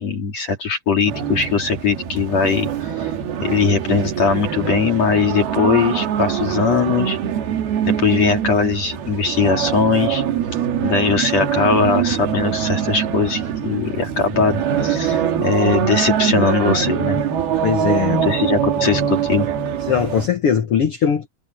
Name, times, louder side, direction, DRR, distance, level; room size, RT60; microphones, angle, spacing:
voice 1, 0.0-2.7 3.0-3.1 3.4-7.2 7.8-10.2 10.8-17.2 18.2-19.5, left 5 dB, 45° left, 4.0 m, -20 dB
sound 1, 1.1-20.3, right 8 dB, 85° right, 4.1 m, -23 dB
voice 2, 17.6-18.2 19.9-21.3, left 7 dB, 65° left, 1.4 m, -19 dB
omnidirectional pair, 4.3 m